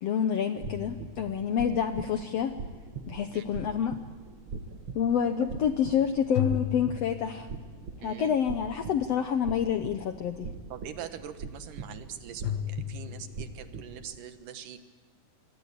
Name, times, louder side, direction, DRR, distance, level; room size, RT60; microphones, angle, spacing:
voice 1, 0.0-2.5 3.1-4.0 4.9-7.5 8.0-10.5, left 8 dB, 70° left, 8 dB, 1.5 m, -28 dB
sound 1, 0.6-1.8 6.3-7.9 12.4-13.6, left 11 dB, 90° left, 2.8 m, -35 dB
sound 2, 0.6-14.2, right 4 dB, 45° right, 1.9 m, -42 dB
voice 2, 8.0-8.4 10.7-14.8, right 9 dB, 75° right, 9 dB, 2.8 m, -43 dB
26.0 x 23.0 x 8.3 m, 1.4 s
omnidirectional pair, 4.0 m